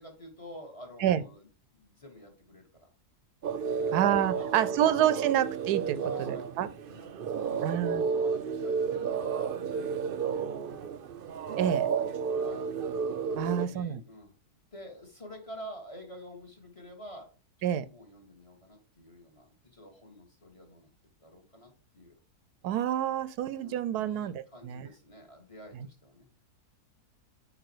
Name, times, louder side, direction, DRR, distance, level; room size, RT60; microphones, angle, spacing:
voice 1, 0.0-1.5 1.7-2.9 3.7-3.9 4.4-5.0 6.0-10.9 11.7-12.6 13.4-14.3 14.7-17.3 17.6-20.9 21.2-22.2 23.5-26.3, equal, 20° left, 2.5 m, -49 dB
sound 1, 3.4-13.7, right 6 dB, 60° right, 0.5 m, -32 dB
voice 2, 3.9-6.7 7.6-8.0 11.6-11.9 13.4-14.0 17.6-17.8 22.6-24.9, right 10 dB, 85° right, 1.2 m, -28 dB
8.9 x 5.3 x 4.8 m
omnidirectional pair, 1.6 m